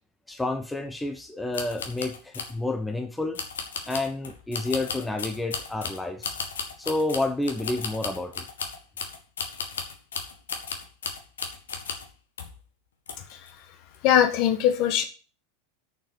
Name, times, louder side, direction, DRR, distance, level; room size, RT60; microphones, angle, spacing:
voice 1, 0.3-3.4 3.9-6.4 6.8-8.4, left 2 dB, 5° left, 6 dB, 0.9 m, -29 dB
sound 1, 1.5-2.6 3.3-12.1 12.4-12.6 13.1-13.5 13.9-14.0, left 5 dB, 65° left, 1.6 m, -35 dB
voice 2, 14.0-15.0, left 10 dB, 45° left, 7 dB, 1.5 m, -20 dB
6.9 x 5.9 x 7.3 m, 0.37 s
figure-of-eight pair, 85°, 0 cm